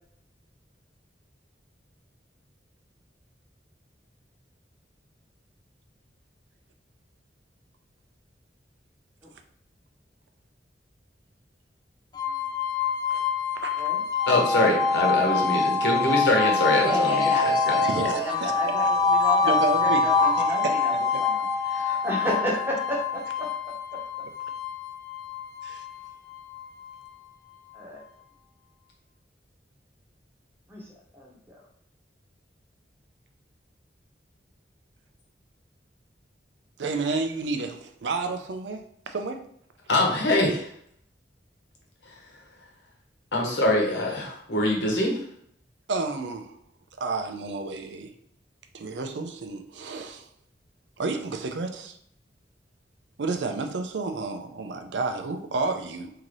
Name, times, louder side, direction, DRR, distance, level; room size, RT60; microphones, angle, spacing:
sound 1, 12.2-27.1, left 4 dB, 25° left, 0.3 m, -25 dB
voice 1, 13.5-13.9 17.8-18.9 19.2-20.0 20.4-20.7 25.6-25.8 36.8-38.8 39.1-39.4 45.9-46.6 47.0-48.1 48.7-50.3 51.0-52.0 53.2-56.1, right 3 dB, 85° right, 6 dB, 0.5 m, -31 dB
voice 2, 14.3-17.8 39.9-40.7 43.3-45.2, left 1 dB, 80° left, -1 dB, 1.1 m, -24 dB
voice 3, 16.8-23.5 27.7-28.0 30.7-30.9 31.1-31.6, left 1 dB, 10° right, -4 dB, 1.0 m, -32 dB
3.9 x 2.8 x 3.1 m, 0.68 s
head